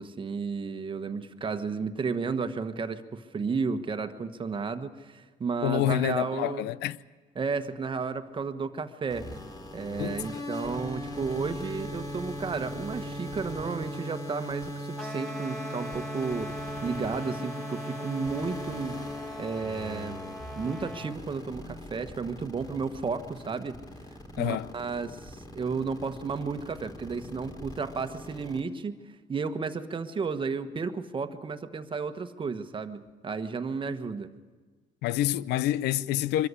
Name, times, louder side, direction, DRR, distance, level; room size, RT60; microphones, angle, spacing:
voice 1, 0.0-6.7 7.4-9.3 9.7-16.5 16.8-19.0 19.4-20.2 20.5-23.8 24.4-28.9 29.3-34.3, right 5 dB, 30° right, 1.3 m, -33 dB
voice 2, 5.6-7.0 10.0-10.5 24.4-24.7 35.0-36.5, left 14 dB, 85° left, 0.6 m, -28 dB
sound 1, 9.1-28.6, equal, 20° left, 3.6 m, -39 dB
sound 2, 14.9-21.2, equal, 5° left, 1.5 m, -41 dB
24.0 x 13.5 x 9.7 m
cardioid pair, 110°, 17 cm